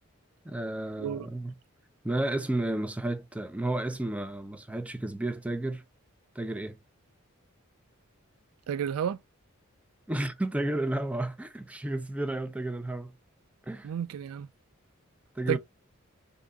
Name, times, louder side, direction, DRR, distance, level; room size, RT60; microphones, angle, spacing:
voice 1, 0.4-1.5 2.0-5.8 6.4-6.8 10.1-13.1 13.6-13.9 15.4-15.6, right 1 dB, 5° right, 0.4 m, -32 dB
voice 2, 8.7-9.2 13.8-14.5 15.5-15.6, right 8 dB, 90° right, 0.3 m, -31 dB
3.5 x 2.8 x 3.8 m
head